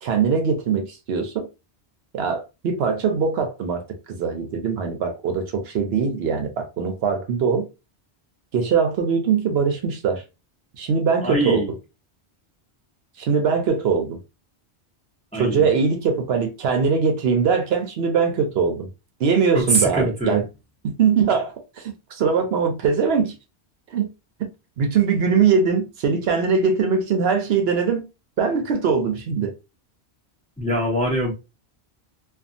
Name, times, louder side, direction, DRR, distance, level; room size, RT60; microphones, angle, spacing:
voice 1, 0.0-1.5 2.1-7.7 8.5-10.2 10.8-11.7 13.2-14.2 15.3-18.9 19.2-20.5 20.8-23.3 23.9-24.1 24.4-24.5 24.8-28.1 28.4-29.5, right 6 dB, 70° right, 0.8 m, -22 dB
voice 2, 11.2-11.7 15.3-15.7 19.5-20.4 30.6-31.3, right 1 dB, 10° left, 0.6 m, -23 dB
2.6 x 2.3 x 2.5 m
omnidirectional pair, 1.1 m